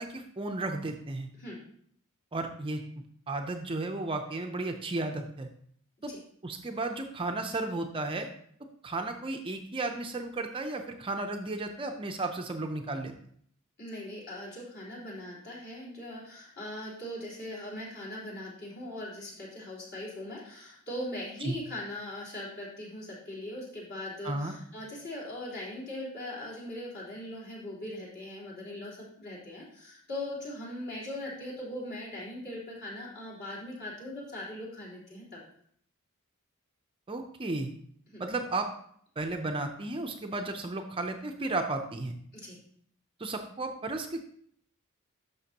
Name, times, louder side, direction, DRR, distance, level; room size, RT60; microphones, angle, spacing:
voice 1, 0.0-1.3 2.3-2.8 3.3-5.5 6.0-6.1 6.4-8.3 8.8-13.1 21.4-21.5 24.2-24.5 37.1-37.7 38.2-38.7 39.2-42.1 43.2-44.2, right 2 dB, 25° right, 5 dB, 0.5 m, -34 dB
voice 2, 13.8-35.4 38.1-38.2 42.4-42.6, left 1 dB, 45° left, -6 dB, 3.7 m, -40 dB
11.0 x 6.6 x 2.9 m, 0.65 s
head